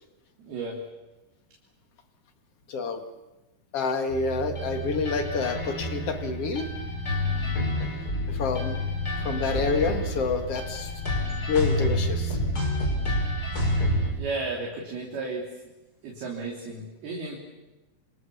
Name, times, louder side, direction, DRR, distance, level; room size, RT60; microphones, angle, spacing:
voice 1, 0.4-0.8 14.2-15.4 16.0-17.4, right 3 dB, 55° right, -2 dB, 5.0 m, -33 dB
voice 2, 2.7-3.0 3.7-6.7 8.3-8.8 9.2-10.9 11.5-12.4, left 4 dB, 55° left, 6 dB, 1.7 m, -28 dB
sound 1, 4.1-14.1, left 1 dB, 20° left, 5.3 m, -28 dB
28.0 x 27.5 x 7.1 m, 1.1 s
omnidirectional pair, 5.7 m